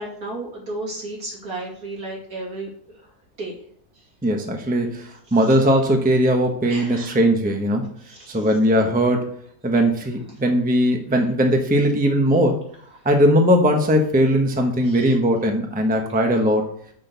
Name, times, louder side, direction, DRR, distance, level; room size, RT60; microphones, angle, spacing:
voice 1, 0.0-2.7 3.0-3.1 3.4-3.6 5.3-5.5 6.7-7.1 8.1-8.5 14.8-15.1, right 2 dB, 70° right, -3 dB, 3.1 m, -33 dB
voice 2, 4.2-7.9 8.3-9.3 9.6-12.6 13.0-16.7, equal, 5° right, 3 dB, 0.9 m, -19 dB
6.4 x 6.2 x 6.8 m, 0.62 s
omnidirectional pair, 1.6 m